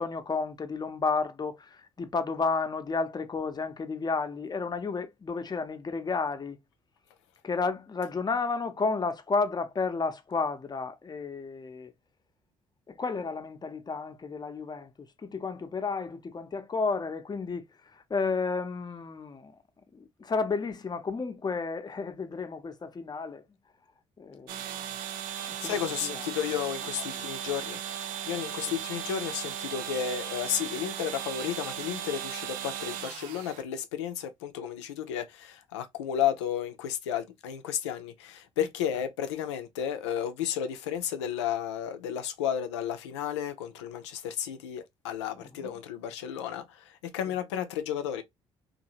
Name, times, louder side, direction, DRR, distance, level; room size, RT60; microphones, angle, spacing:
voice 1, 0.0-6.6 7.4-11.9 12.9-19.5 19.9-23.4 24.2-24.9 25.5-26.3 27.1-27.2 45.4-45.7, left 4 dB, 30° left, 0.7 m, -32 dB
sound 1, 24.5-33.6, right 9 dB, 75° right, 0.4 m, -37 dB
voice 2, 25.6-27.8 28.3-48.2, left 9 dB, 90° left, 0.5 m, -33 dB
2.7 x 2.5 x 2.8 m
hypercardioid pair, 55°, 14 cm